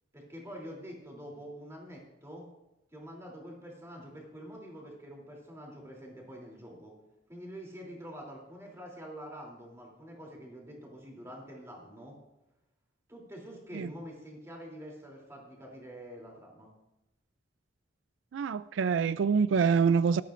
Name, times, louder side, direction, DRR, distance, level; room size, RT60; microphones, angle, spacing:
voice 1, 0.1-2.4 2.9-6.9 7.3-12.2 13.1-16.7, equal, 15° right, -1 dB, 3.2 m, -46 dB
voice 2, 18.3-20.2, right 6 dB, 90° right, 16 dB, 0.4 m, -26 dB
17.5 x 13.0 x 2.6 m, 0.95 s
head